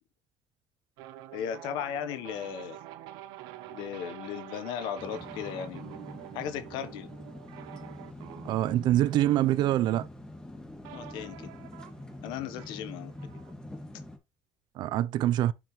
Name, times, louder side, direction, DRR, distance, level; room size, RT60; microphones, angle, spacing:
sound 1, 1.0-10.2 10.8-13.5, right 13 dB, 85° right, 1.0 m, -47 dB
voice 1, 1.3-2.8 3.7-6.0 6.3-7.1 10.9-11.7 12.2-13.1, left 8 dB, 80° left, 1.1 m, -36 dB
sound 2, 5.0-14.2, left 1 dB, 10° left, 1.9 m, -45 dB
voice 2, 8.5-10.1 14.8-15.5, right 13 dB, 70° right, 0.6 m, -25 dB
7.3 x 5.8 x 3.2 m
supercardioid pair, 90°, 8 cm